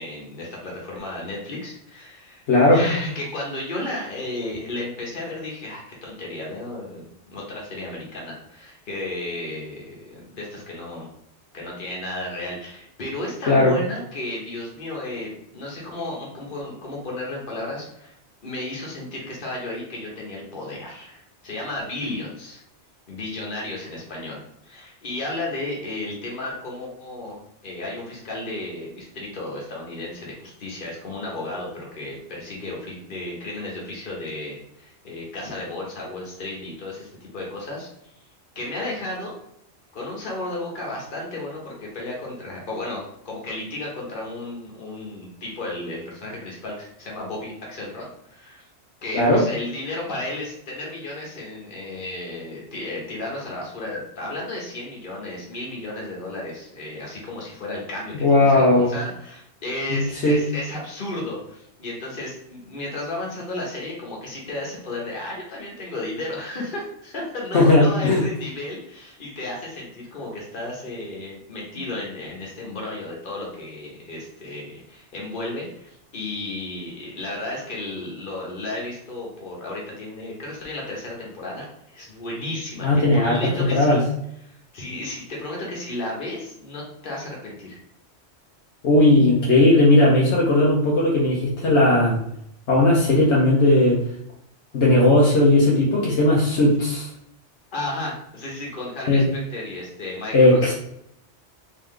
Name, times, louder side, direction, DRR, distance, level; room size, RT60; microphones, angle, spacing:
voice 1, 0.0-2.4 2.7-11.1 11.5-18.2 18.4-22.6 23.1-27.4 27.6-37.9 38.5-39.3 39.9-48.6 49.0-82.9 83.1-84.0 84.4-87.8 97.7-100.6, left 2 dB, 50° left, -3 dB, 1.3 m, -33 dB
voice 2, 2.5-2.8 13.5-13.8 49.1-49.4 58.2-58.9 59.9-60.4 67.5-68.2 82.8-84.0 88.8-92.2 92.7-94.0 94.7-97.1 99.1-99.2 100.3-100.7, left 2 dB, 75° left, -4 dB, 1.1 m, -17 dB
3.8 x 3.2 x 3.2 m, 0.73 s
omnidirectional pair, 1.2 m